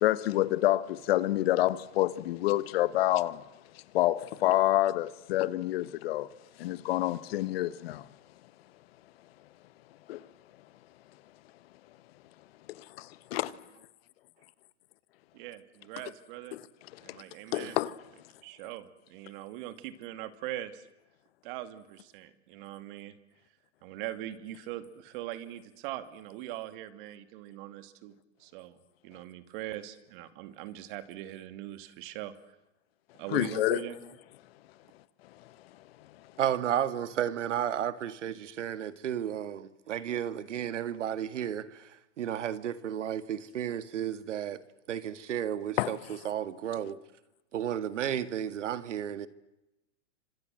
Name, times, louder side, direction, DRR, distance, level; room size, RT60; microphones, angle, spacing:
voice 1, 0.0-3.4 3.9-6.3 6.6-8.1 10.1-10.2 12.7-13.5 16.5-16.6 17.1-17.2 17.5-17.9 33.3-33.8 45.8-45.9, left 15 dB, 55° left, 1.4 m, -28 dB
voice 2, 15.4-16.6 17.0-17.8 18.4-20.9 21.4-23.2 23.8-28.1 28.4-28.8 29.0-32.3 33.2-34.0, right 13 dB, 45° right, 2.6 m, -41 dB
voice 3, 36.4-41.8 42.2-44.6 44.9-46.0 46.2-47.0 47.5-49.3, right 10 dB, 85° right, 1.9 m, -33 dB
29.5 x 25.5 x 7.8 m
hypercardioid pair, 145°, 35 cm